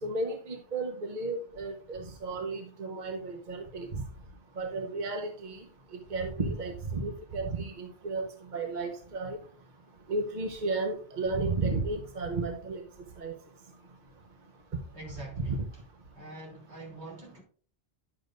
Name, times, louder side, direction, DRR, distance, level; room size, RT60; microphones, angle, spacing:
voice 1, 0.0-4.0 4.6-5.6 6.1-9.4 10.1-12.8 13.2-13.3 15.4-15.6, right 3 dB, 45° right, 1.3 m, -33 dB
voice 2, 14.9-15.8 16.1-17.4, right 2 dB, 85° right, 3.4 m, -45 dB
10.5 x 7.5 x 2.5 m
omnidirectional pair, 1.1 m